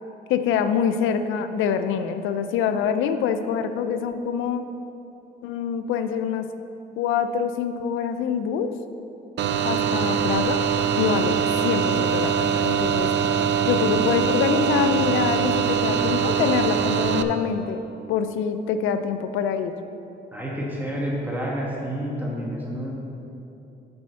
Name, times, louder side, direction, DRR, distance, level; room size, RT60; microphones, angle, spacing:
voice 1, 0.3-4.6 5.4-6.5 7.0-8.7 9.6-10.6 11.0-13.1 13.7-17.8 18.1-19.7, left 7 dB, 90° left, 10 dB, 0.5 m, -25 dB
sound 1, 9.4-17.2, right 7 dB, 65° right, 0.5 m, -23 dB
voice 2, 20.3-22.9, equal, 10° right, -5 dB, 1.6 m, -29 dB
6.9 x 5.2 x 6.8 m, 2.9 s
cardioid pair, 90°, 20 cm